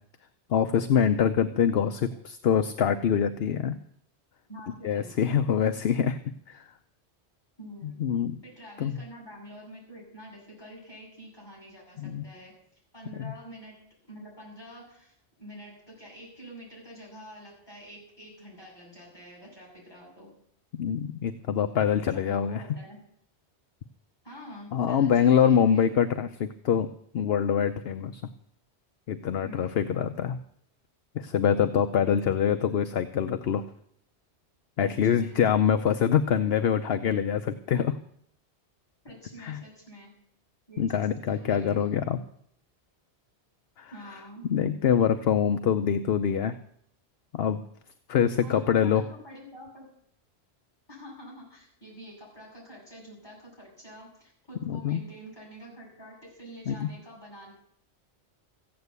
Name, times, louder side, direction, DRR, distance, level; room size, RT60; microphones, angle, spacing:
voice 1, 0.5-3.8 4.8-6.2 6.5-6.6 8.0-8.4 8.8-9.0 12.0-12.2 13.2-13.3 20.7-22.6 24.7-26.9 27.1-28.2 29.1-30.4 31.1-33.6 34.8-37.9 39.4-39.6 40.8-42.2 43.8-43.9 44.5-46.6 47.3-47.6 48.1-49.0 54.7-55.0 56.7-56.9, left 8 dB, 65° left, 9 dB, 0.9 m, -25 dB
voice 2, 4.5-5.1 7.6-8.0 8.4-20.3 22.1-23.0 24.2-25.9 29.4-29.9 34.9-35.4 39.0-40.2 40.7-41.9 43.9-44.5 48.4-49.9 50.9-57.5, equal, 20° left, -5 dB, 8.2 m, -47 dB
15.0 x 9.1 x 8.1 m, 0.67 s
omnidirectional pair, 1.2 m